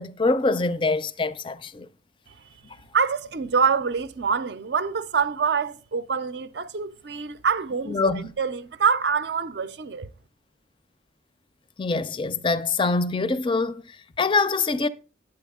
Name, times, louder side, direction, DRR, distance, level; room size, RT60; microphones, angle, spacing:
voice 1, 0.0-1.9 7.9-8.3 11.8-14.9, left 3 dB, 25° left, 0.4 m, -24 dB
voice 2, 2.9-10.1, right 6 dB, 60° right, 0.5 m, -25 dB
9.2 x 7.7 x 3.6 m
head